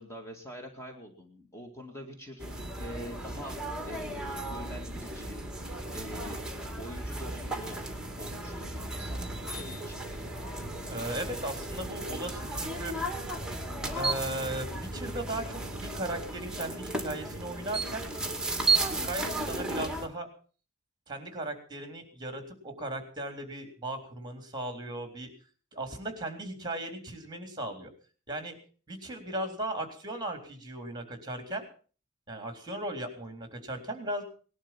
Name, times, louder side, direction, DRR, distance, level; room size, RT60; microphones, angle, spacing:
voice 1, 0.0-6.4 6.8-7.8 8.2-10.0, equal, 15° left, 3 dB, 2.0 m, -45 dB
sound 1, 2.4-20.1, right 2 dB, 5° right, 2.4 m, -34 dB
voice 2, 10.9-12.9 13.9-18.1 18.9-20.3 21.1-25.3 25.7-27.9 28.3-28.6 28.9-31.6 32.3-34.2, right 1 dB, 20° right, 6 dB, 3.7 m, -37 dB
19.5 x 11.5 x 5.9 m, 0.40 s
head